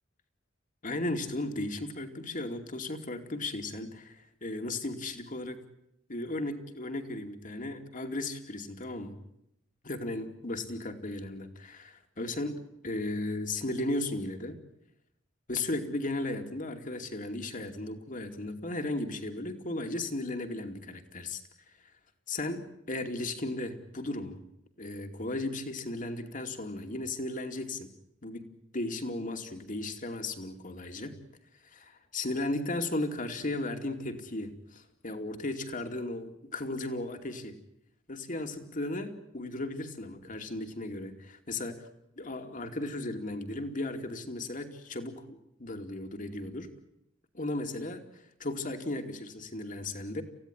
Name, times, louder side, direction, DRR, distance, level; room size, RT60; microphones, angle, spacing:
voice 1, 0.8-5.6 6.1-9.1 9.8-14.6 15.5-21.4 22.3-24.4 24.8-27.9 28.2-28.5 28.7-31.2 31.6-37.6 38.1-41.9 42.2-46.7 47.3-50.2, left 2 dB, 40° left, 6 dB, 2.6 m, -35 dB
28.5 x 16.0 x 10.0 m, 0.79 s
head